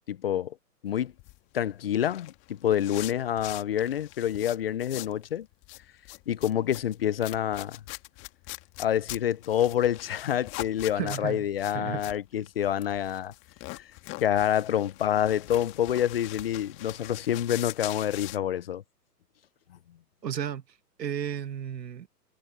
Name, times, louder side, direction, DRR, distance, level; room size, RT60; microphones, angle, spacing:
voice 1, 0.1-0.5 0.8-1.1 1.5-5.5 6.3-7.8 8.8-13.3 14.2-18.8, left 10 dB, 40° left, 0.4 m, -27 dB
sound 1, 1.0-5.2 5.5-18.4, left 22 dB, 25° left, 1.8 m, -42 dB
voice 2, 10.9-11.4 11.7-12.0 20.2-22.1, right 9 dB, 85° right, 1.7 m, -33 dB
hypercardioid pair, 145°, 49 cm